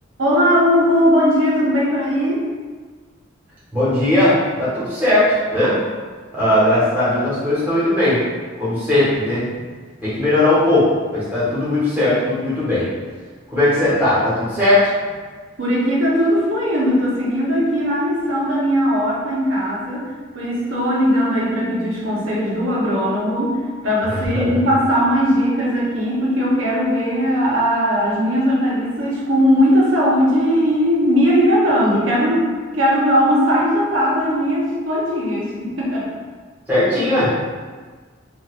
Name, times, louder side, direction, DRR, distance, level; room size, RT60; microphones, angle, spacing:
voice 1, 0.2-2.5 15.6-32.5 32.7-36.1, equal, 90° right, -5 dB, 0.9 m, -18 dB
voice 2, 3.7-5.7 6.3-8.2 8.6-9.5 10.0-12.9 13.5-14.9 24.1-24.6 36.7-37.3, left 1 dB, 10° right, -11 dB, 1.3 m, -18 dB
4.1 x 2.5 x 2.4 m, 1.4 s
head